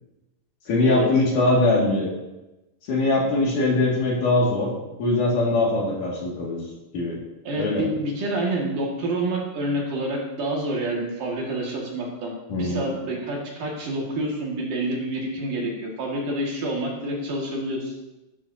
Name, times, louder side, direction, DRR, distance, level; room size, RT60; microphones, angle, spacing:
voice 1, 0.7-2.1 2.9-4.7 5.0-6.6 6.9-7.2 7.6-7.9 12.5-12.9, left 2 dB, 55° left, -3 dB, 3.4 m, -21 dB
voice 2, 7.4-12.3 12.6-17.9, right 1 dB, 60° right, -2 dB, 3.3 m, -28 dB
15.0 x 12.0 x 2.8 m, 1.0 s
omnidirectional pair, 4.6 m